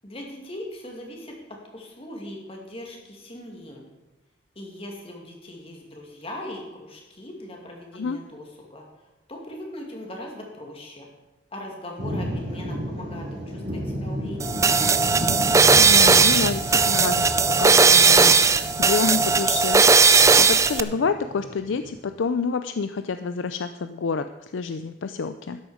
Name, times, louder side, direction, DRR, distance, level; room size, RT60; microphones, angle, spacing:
voice 1, 0.0-1.3 1.7-3.9 4.6-8.4 8.7-8.8 9.3-11.1 11.5-14.8, left 1 dB, 30° left, 0 dB, 2.4 m, -39 dB
sound 1, 12.0-22.0, equal, 65° right, 4.4 m, -33 dB
sound 2, 14.4-20.8, right 5 dB, 15° right, 0.4 m, -17 dB
voice 2, 15.7-17.3 17.6-25.6, left 5 dB, 75° left, 10 dB, 0.5 m, -28 dB
12.5 x 10.0 x 5.0 m, 1.1 s
head